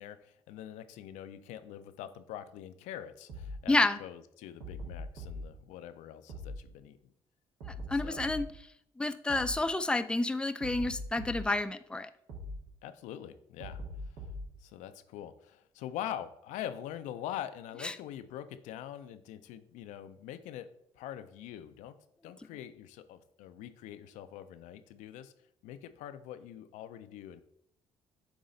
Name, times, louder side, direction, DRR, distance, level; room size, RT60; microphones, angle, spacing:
voice 1, 0.0-7.0 8.0-8.2 12.8-13.8 14.6-20.7 20.9-22.0 22.2-25.3 25.6-27.4, left 11 dB, 80° left, 10 dB, 0.5 m, -44 dB
sound 1, 3.3-3.6 4.6-5.5 6.3-6.6 7.6-8.5 9.3-9.6 10.6-11.5 12.3-12.6 13.6-14.5, left 1 dB, 75° right, 1.7 m, -41 dB
voice 2, 3.7-4.0 7.9-8.5 9.0-12.1 17.8-17.9, left 2 dB, 10° left, 10 dB, 0.4 m, -29 dB
7.9 x 3.1 x 3.8 m, 0.73 s
hypercardioid pair, 55°, 13 cm